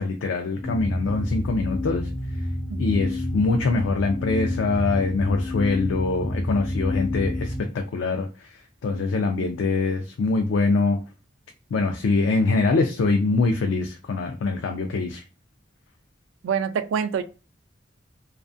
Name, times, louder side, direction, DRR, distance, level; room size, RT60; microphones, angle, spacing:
voice 1, 0.0-2.1 2.4-2.5 2.8-11.0 11.7-15.2, left 3 dB, 80° left, 0.4 m, -24 dB
sound 1, 0.6-7.6, left 1 dB, 30° left, 0.8 m, -29 dB
voice 2, 2.7-3.1 9.4-9.5 16.4-17.2, right 7 dB, 90° right, 0.3 m, -27 dB
2.5 x 2.4 x 2.3 m
head